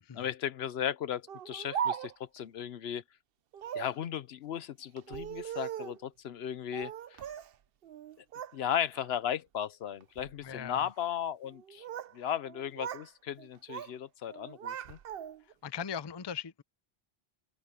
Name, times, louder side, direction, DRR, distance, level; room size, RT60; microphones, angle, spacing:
voice 1, 0.1-3.0 3.7-7.2 8.2-8.3 8.5-11.9 12.1-15.0, left 9 dB, 75° left, 0.9 m, -36 dB
Speech, 1.3-2.4 3.5-4.0 5.0-6.0 6.7-7.5 7.8-8.6 8.9-9.3 10.0-10.3 11.4-12.2 12.4-13.1 13.4-14.0 14.3-15.5, right 9 dB, 65° right, 0.8 m, -39 dB
voice 2, 10.4-10.9 15.6-16.6, left 8 dB, 30° left, 0.5 m, -39 dB
open air
omnidirectional pair, 1.1 m